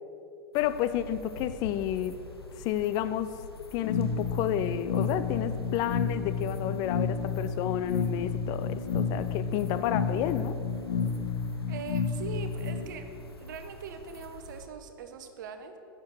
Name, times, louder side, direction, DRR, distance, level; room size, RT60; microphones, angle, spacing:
sound 1, 0.5-14.7, left 2 dB, 85° left, 0.8 m, -46 dB
voice 1, 0.5-2.2 2.6-3.3 3.7-10.6, left 11 dB, 30° left, 12 dB, 0.4 m, -31 dB
sound 2, 3.8-12.8, left 5 dB, 50° left, 0.8 m, -31 dB
voice 2, 11.7-13.1 13.4-15.8, right 6 dB, 55° right, 8 dB, 0.9 m, -41 dB
10.0 x 6.7 x 6.2 m, 2.7 s
figure-of-eight pair, 95°, 13 cm